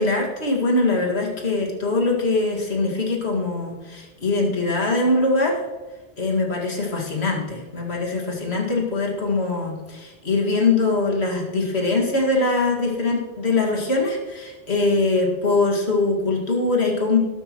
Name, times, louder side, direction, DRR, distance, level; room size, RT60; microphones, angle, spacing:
voice 1, 0.0-5.5 6.2-17.2, left 3 dB, 85° left, 0 dB, 2.3 m, -22 dB
13.0 x 12.5 x 3.0 m, 1.3 s
omnidirectional pair, 1.1 m